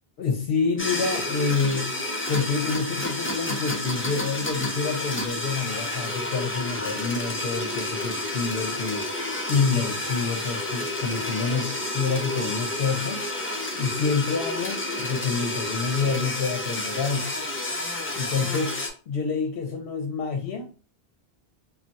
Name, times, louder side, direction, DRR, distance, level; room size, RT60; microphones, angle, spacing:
voice 1, 0.2-2.0 2.3-9.1 9.5-13.3 13.8-17.3 18.2-18.8 19.1-20.7, left 5 dB, 70° left, 0.8 m, -27 dB
sound 1, 0.8-18.9, left 2 dB, 20° left, 0.4 m, -30 dB
2.3 x 2.3 x 3.9 m
omnidirectional pair, 1.1 m